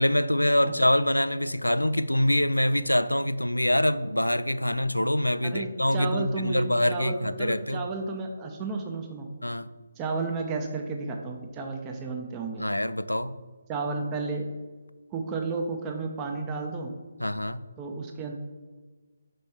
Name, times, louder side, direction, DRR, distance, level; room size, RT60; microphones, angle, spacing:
voice 1, 0.0-7.9 9.4-9.7 12.6-13.4 17.2-17.6, left 1 dB, 90° left, 14 dB, 0.3 m, -25 dB
voice 2, 5.4-9.2 10.0-12.6 13.7-14.4 15.1-16.9 17.8-18.3, right 3 dB, 15° right, 2 dB, 0.6 m, -32 dB
5.2 x 4.2 x 4.7 m, 1.3 s
figure-of-eight pair, 145°, 0 cm